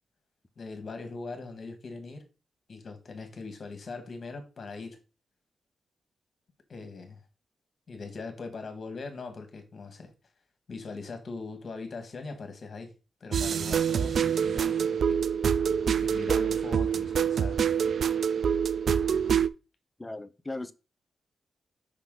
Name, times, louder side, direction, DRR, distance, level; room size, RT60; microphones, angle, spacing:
voice 1, 0.6-2.2 2.7-5.0 6.7-7.2 7.9-10.1 10.7-12.9 13.2-15.2 16.0-17.7, left 4 dB, 45° left, 1.7 m, -41 dB
sound 1, 13.3-19.5, right 7 dB, 60° right, 0.3 m, -26 dB
voice 2, 20.0-20.7, left 2 dB, 15° left, 0.6 m, -37 dB
5.8 x 5.2 x 3.8 m
wide cardioid pair, 110°, 0 cm